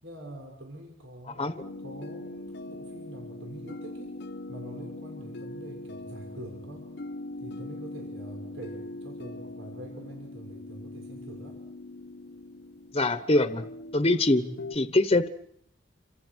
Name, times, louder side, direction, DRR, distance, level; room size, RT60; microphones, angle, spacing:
voice 1, 0.0-4.2 4.5-6.9 7.4-11.6 14.3-14.5, right 1 dB, 85° right, 1 dB, 5.9 m, -44 dB
sound 1, 1.6-14.8, left 2 dB, 65° left, 1.0 m, -41 dB
voice 2, 12.9-13.7 13.9-14.4 14.7-15.3, left 2 dB, 30° left, 11 dB, 1.1 m, -23 dB
29.0 x 26.5 x 6.4 m, 0.68 s
head